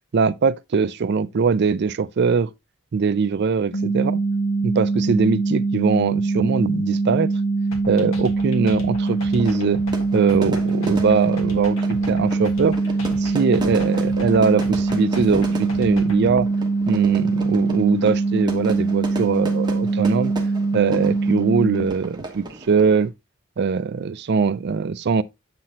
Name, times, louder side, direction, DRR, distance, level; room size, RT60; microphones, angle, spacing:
voice 1, 0.1-2.5 2.9-4.2 4.6-7.3 7.9-9.8 10.1-12.8 13.2-16.5 16.9-20.3 20.7-23.1 23.6-25.2, right 5 dB, 50° right, 0.4 m, -21 dB
sound 1, 3.7-21.9, right 3 dB, 90° left, 0.9 m, -23 dB
sound 2, 7.7-16.4, left 1 dB, 70° left, 1.6 m, -37 dB
Fire / Fireworks, 9.1-23.1, right 1 dB, 20° right, 1.1 m, -35 dB
7.5 x 5.8 x 2.8 m
head